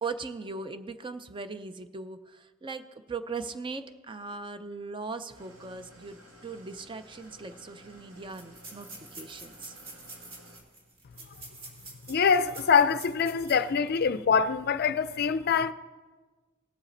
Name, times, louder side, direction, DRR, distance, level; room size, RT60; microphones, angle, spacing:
voice 1, 0.0-9.8, right 4 dB, 25° right, 0.5 m, -39 dB
Engine starting / Idling, 5.3-10.6, equal, 80° right, 2.1 m, -54 dB
sound 1, 7.2-7.3 7.5-7.6 8.3-13.7 14.1-14.2 14.7-14.9, right 2 dB, 45° right, 2.1 m, -47 dB
voice 2, 12.1-15.7, left 6 dB, 50° left, 0.4 m, -24 dB
18.0 x 7.2 x 3.9 m
head